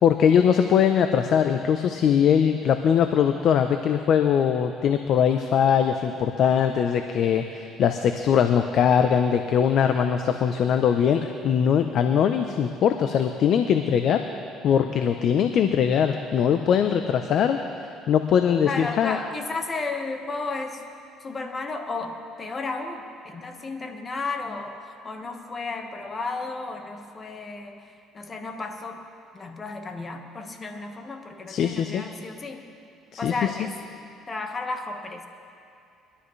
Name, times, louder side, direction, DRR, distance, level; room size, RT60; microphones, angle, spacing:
voice 1, 0.0-14.2 14.6-17.6 18.1-19.2 31.5-32.0 33.1-33.5, left 8 dB, 60° left, 7 dB, 0.7 m, -21 dB
voice 2, 18.7-20.8 21.2-27.8 28.1-29.0 29.3-32.6 33.2-33.7 34.3-35.3, left 3 dB, 30° left, 5 dB, 1.5 m, -33 dB
21.5 x 12.5 x 3.3 m, 2.5 s
supercardioid pair, 85°, 0 cm